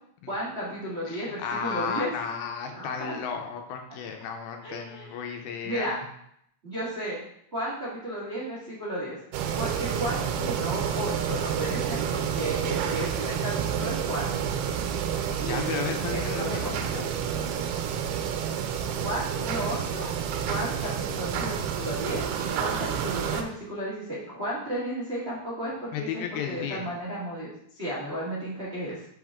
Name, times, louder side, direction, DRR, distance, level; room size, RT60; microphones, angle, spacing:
voice 1, 0.3-2.1 2.7-3.2 4.6-5.3 5.6-6.0 6.6-7.2 7.5-9.2 9.6-14.3 15.4-16.9 18.8-20.1 20.5-29.1, equal, 60° right, -7 dB, 0.6 m, -34 dB
voice 2, 1.1-6.0 15.4-17.2 25.9-26.9, left 7 dB, 80° left, 4 dB, 2.5 m, -34 dB
sound 1, 9.3-23.4, right 8 dB, 85° right, 2.6 m, -29 dB
6.1 x 5.8 x 3.6 m, 0.71 s
omnidirectional pair, 4.6 m